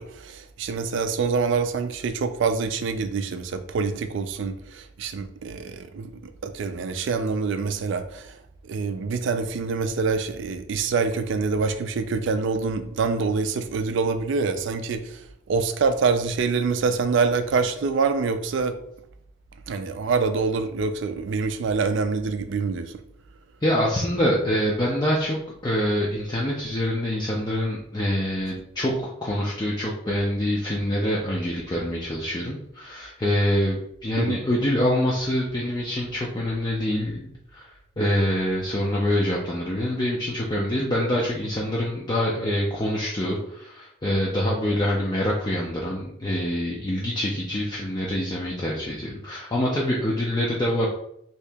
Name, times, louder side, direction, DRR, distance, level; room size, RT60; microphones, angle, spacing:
voice 1, 0.0-8.4 8.6-18.8 19.7-23.0 34.2-34.4, right 4 dB, 65° right, 9 dB, 0.3 m, -26 dB
voice 2, 23.6-25.4 25.6-37.2 37.5-37.7 38.0-50.9, left 1 dB, 20° left, -4 dB, 0.4 m, -25 dB
2.8 x 2.8 x 3.4 m, 0.73 s
head